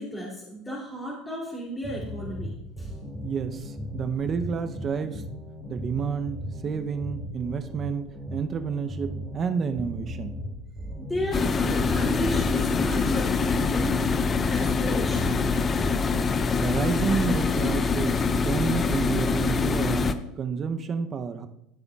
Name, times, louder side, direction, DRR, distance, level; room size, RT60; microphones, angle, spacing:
voice 1, 0.0-2.9 11.0-14.0 14.4-15.4, equal, 15° left, -5 dB, 3.0 m, -33 dB
sound 1, 1.8-16.3, left 1 dB, 5° right, 2.6 m, -37 dB
voice 2, 3.2-5.2 5.7-10.4 16.5-21.5, right 6 dB, 35° right, 8 dB, 0.7 m, -30 dB
sound 2, 11.3-20.1, left 4 dB, 30° left, 0.6 m, -24 dB
14.0 x 7.0 x 2.4 m, 0.82 s
hypercardioid pair, 85°, 0 cm